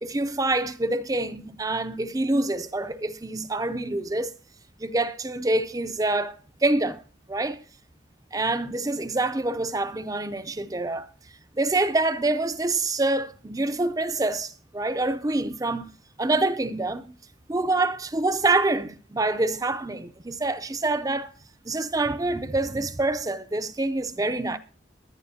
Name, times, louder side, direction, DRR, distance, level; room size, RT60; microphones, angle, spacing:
voice 1, 0.0-4.3 4.8-6.3 6.6-7.0 7.3-7.6 8.3-11.1 11.6-17.1 17.5-21.3 21.6-24.6, right 2 dB, 20° right, 0.5 m, -26 dB
21.5 x 10.5 x 2.8 m
head